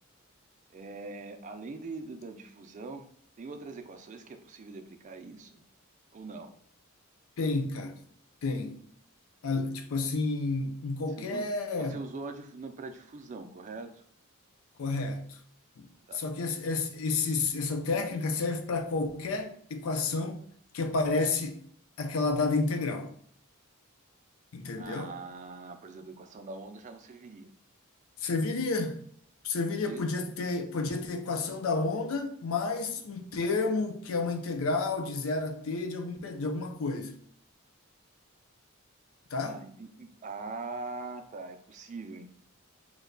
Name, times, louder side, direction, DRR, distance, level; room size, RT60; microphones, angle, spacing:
voice 1, 0.7-3.1 3.4-5.6 6.1-6.5 11.1-11.5 11.8-14.0 16.1-16.2 24.7-27.5 29.8-30.3 39.5-42.3, right 3 dB, 35° right, 0.4 m, -42 dB
voice 2, 7.4-8.0 8.4-8.8 9.4-12.0 14.8-15.4 15.8-15.9 16.1-20.4 20.7-21.6 22.0-23.1 24.5-25.1 28.2-29.0 29.4-37.2 39.3-39.6, left 3 dB, 70° left, 0.4 m, -30 dB
3.0 x 2.2 x 3.7 m
head